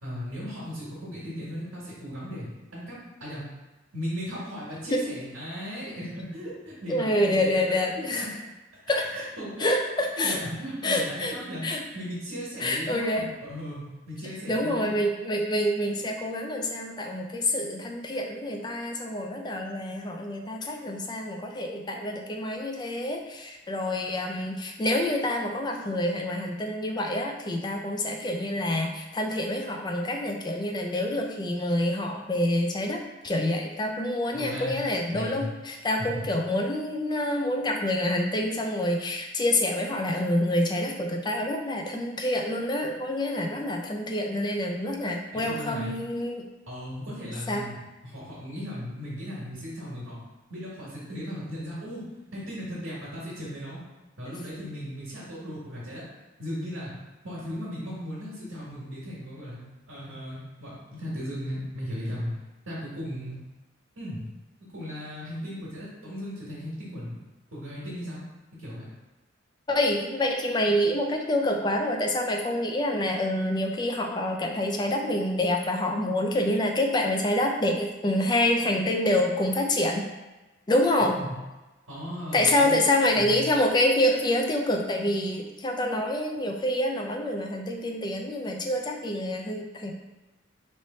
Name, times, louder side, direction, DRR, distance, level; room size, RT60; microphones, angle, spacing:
voice 1, 0.0-3.5 3.9-8.3 9.1-9.7 10.2-14.9 34.3-34.7 35.1-35.5 36.0-36.3 45.3-46.0 46.7-50.2 50.5-53.8 54.2-56.0 56.4-56.9 57.2-59.6 59.9-62.3 62.7-63.4 64.0-64.2 64.7-67.2 67.5-68.2 68.6-68.8 81.0-81.3 81.9-83.5, equal, 85° right, -8 dB, 1.3 m, -37 dB
voice 2, 6.9-8.3 8.9-9.0 9.6-10.4 10.8-11.3 11.6-11.8 12.6-13.2 14.5-46.4 47.5-47.6 69.7-80.0 80.7-81.1 82.3-89.9, left 1 dB, 20° left, 2 dB, 0.4 m, -27 dB
3.2 x 2.9 x 4.2 m, 1.1 s
head